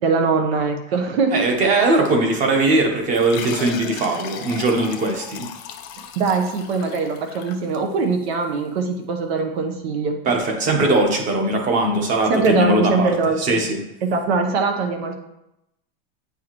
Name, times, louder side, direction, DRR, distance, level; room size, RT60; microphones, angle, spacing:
voice 1, 0.0-1.5 6.2-10.1 12.3-13.6 14.0-15.1, right 4 dB, 75° right, 4 dB, 1.0 m, -22 dB
voice 2, 1.3-5.5 10.2-13.1 13.4-13.8, right 2 dB, 25° right, 3 dB, 1.0 m, -20 dB
sound 1, 3.1-8.3, left 8 dB, 35° left, 0.5 m, -36 dB
8.7 x 4.7 x 3.0 m, 0.85 s
supercardioid pair, 175°, 31 cm